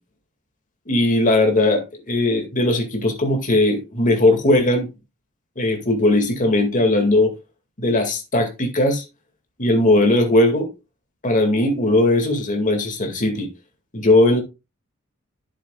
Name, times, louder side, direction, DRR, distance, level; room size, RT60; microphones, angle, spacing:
voice 1, 0.9-4.9 5.6-7.3 7.8-9.0 9.6-10.7 11.2-13.5 13.9-14.4, left 2 dB, 35° left, 2.1 m, -18 dB
10.5 x 7.4 x 2.3 m
head